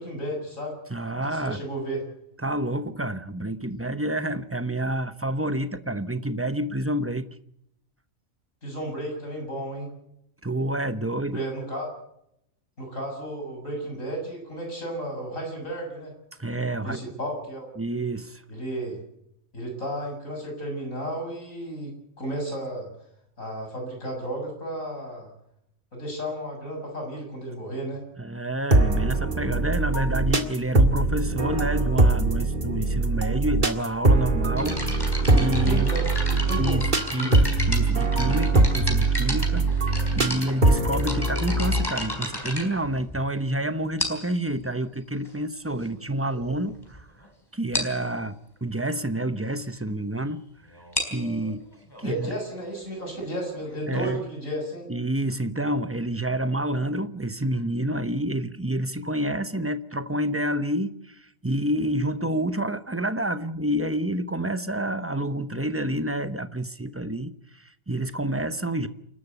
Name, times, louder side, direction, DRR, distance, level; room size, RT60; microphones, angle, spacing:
voice 1, 0.0-0.7 1.3-2.0 8.6-9.9 11.3-11.9 12.8-16.1 16.8-17.7 18.5-19.0 19.5-22.9 23.4-25.3 25.9-28.0 35.6-36.1 36.4-36.8 37.2-37.4 52.0-54.9, right 1 dB, 80° left, 2 dB, 7.8 m, -33 dB
voice 2, 0.9-1.6 2.4-7.3 10.4-11.4 16.4-17.0 17.8-18.4 28.2-35.9 36.5-47.1 47.5-50.4 51.1-51.6 52.0-52.3 53.9-54.2 54.9-68.9, right 1 dB, 10° right, 11 dB, 0.8 m, -28 dB
sound 1, 28.7-41.8, right 2 dB, 35° right, 2.2 m, -22 dB
sound 2, 34.6-43.4 44.0-44.4 45.2-45.3 46.0-46.1 46.3-46.5 46.9-47.0 47.2-47.3 47.7-48.0 50.7-54.2, left 1 dB, 15° left, 4.6 m, -33 dB
28.5 x 12.5 x 8.1 m, 0.77 s
omnidirectional pair, 1.4 m